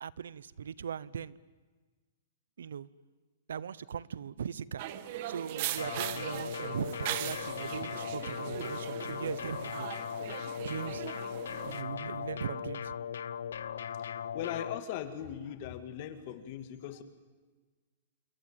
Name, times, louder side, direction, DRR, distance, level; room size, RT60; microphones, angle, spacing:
voice 1, 0.0-1.4 2.6-2.9 3.5-4.8 5.3-9.9 10.6-11.2 11.6-12.9, right 7 dB, 90° right, 0.9 m, -39 dB
sound 1, 4.8-11.8, right 12 dB, 45° right, 1.8 m, -40 dB
sound 2, 5.8-14.8, left 8 dB, 80° left, 0.8 m, -38 dB
voice 2, 14.3-17.0, left 10 dB, 40° left, 2.4 m, -39 dB
28.0 x 23.0 x 9.1 m
hypercardioid pair, 155°, 0 cm